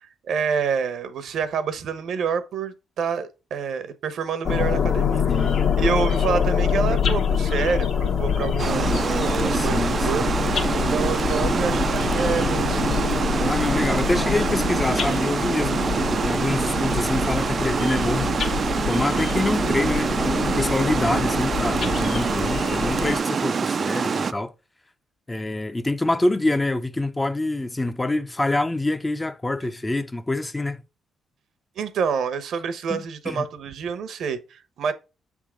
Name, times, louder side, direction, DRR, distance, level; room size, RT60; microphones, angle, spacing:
voice 1, 0.3-13.0 31.8-34.9, right 6 dB, 70° right, 0.9 m, -28 dB
sound 1, 4.4-23.2, left 7 dB, 60° left, 1.1 m, -25 dB
Water, 8.6-24.3, right 5 dB, 45° right, 0.4 m, -25 dB
voice 2, 9.5-10.3 13.4-18.5 18.9-24.5 25.3-30.8 32.9-33.5, left 2 dB, 15° left, 0.6 m, -26 dB
7.2 x 3.6 x 4.9 m
cardioid pair, 75°, 0 cm